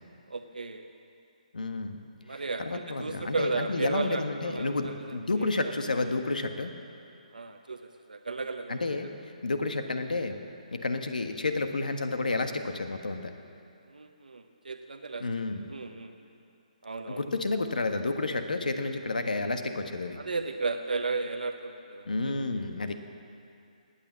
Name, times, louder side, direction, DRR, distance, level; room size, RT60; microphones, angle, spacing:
voice 1, 0.3-0.9 2.3-4.9 5.4-5.7 7.3-7.8 8.1-8.8 13.9-15.2 15.7-16.1 16.8-17.2 20.2-22.0, right 3 dB, 85° right, 6 dB, 1.0 m, -34 dB
voice 2, 1.5-2.0 2.3-6.7 8.7-9.1 9.4-10.4 10.7-13.3 15.2-15.7 17.1-20.2 22.0-22.9, left 3 dB, 85° left, 7 dB, 1.5 m, -30 dB
19.0 x 8.8 x 7.6 m, 2.6 s
hypercardioid pair, 155°, 4 cm